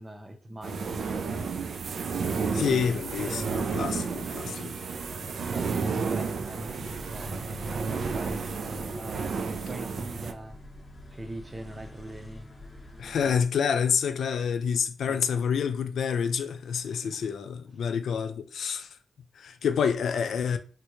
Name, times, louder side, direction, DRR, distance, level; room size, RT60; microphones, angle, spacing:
voice 1, 0.0-1.7 4.3-4.7 5.4-10.6 11.1-12.5 13.3-13.4 15.0-15.2 16.9-17.2, right 1 dB, 25° right, 0.6 m, -42 dB
sound 1, 0.6-10.3, right 5 dB, 70° right, 0.3 m, -32 dB
voice 2, 2.5-4.7 13.0-18.9 19.4-20.6, left 7 dB, 85° left, 0.3 m, -28 dB
sound 2, 6.2-13.4, left 1 dB, 30° left, 0.7 m, -47 dB
3.5 x 2.2 x 2.9 m
cardioid pair, 80°, 0 cm